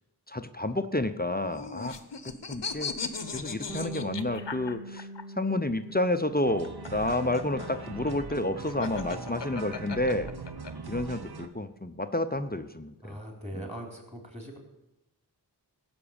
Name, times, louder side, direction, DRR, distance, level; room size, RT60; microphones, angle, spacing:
voice 1, 0.3-2.0 2.2-2.9 3.3-5.1 5.4-10.3 10.9-13.2 13.6-13.7, left 1 dB, 20° left, 8 dB, 0.7 m, -30 dB
sound 1, 1.2-5.2 6.5-10.7, left 5 dB, 85° left, 0.9 m, -37 dB
Bass guitar, 3.7-9.9, equal, ahead, 1.1 m, -45 dB
sound 2, 6.4-11.5, right 4 dB, 60° right, 1.1 m, -41 dB
voice 2, 13.0-14.6, equal, 15° right, 2 dB, 3.6 m, -40 dB
16.5 x 6.0 x 8.8 m, 0.94 s
wide cardioid pair, 45°, 42 cm